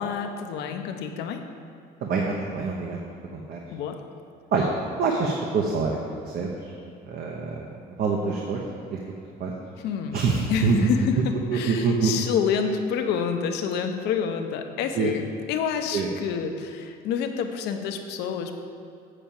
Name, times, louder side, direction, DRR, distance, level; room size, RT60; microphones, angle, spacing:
voice 1, 0.0-1.4 3.7-4.0 9.8-10.2 10.5-18.5, left 7 dB, 85° left, 5 dB, 0.8 m, -28 dB
voice 2, 2.0-3.0 3.3-3.6 4.5-4.7 5.0-6.0 6.3-6.5 7.1-7.6 8.0-8.6 9.4-9.5 10.1-10.9 11.5-12.1 15.0-15.1 15.9-16.1, right 4 dB, 65° right, 0 dB, 1.0 m, -25 dB
8.5 x 5.0 x 7.1 m, 2.5 s
cardioid pair, 110°, 17 cm